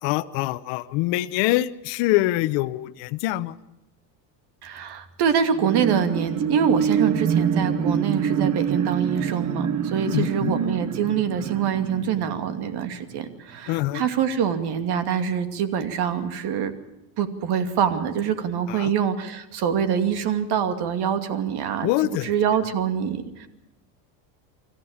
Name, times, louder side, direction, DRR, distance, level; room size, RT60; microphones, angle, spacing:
voice 1, 0.0-3.6 10.0-10.6 13.7-14.1 18.7-18.9 21.8-22.3, left 17 dB, 65° left, 10 dB, 1.0 m, -24 dB
voice 2, 4.6-16.7 17.2-21.9 22.2-23.5, right 8 dB, 50° right, 9 dB, 2.5 m, -25 dB
sound 1, 5.5-13.3 13.8-13.9, right 7 dB, 35° right, 1.4 m, -26 dB
25.5 x 14.0 x 8.7 m, 0.91 s
supercardioid pair, 115°, 48 cm